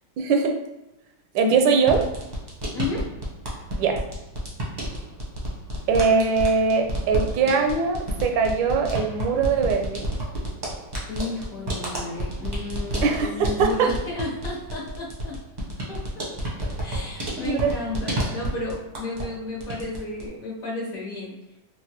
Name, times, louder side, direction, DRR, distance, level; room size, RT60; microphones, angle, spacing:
voice 1, 0.2-0.6 1.3-2.1 3.8-4.0 5.9-10.2 13.0-13.9 17.4-17.7, right 5 dB, 85° right, 4 dB, 1.3 m, -21 dB
sound 1, 1.8-19.3 19.6-20.3, equal, 40° right, 0.6 m, -31 dB
voice 2, 2.7-3.1 11.1-15.4 15.9-16.3 16.8-21.3, left 2 dB, 55° left, -4 dB, 1.2 m, -33 dB
3.9 x 2.2 x 2.8 m, 0.95 s
omnidirectional pair, 1.9 m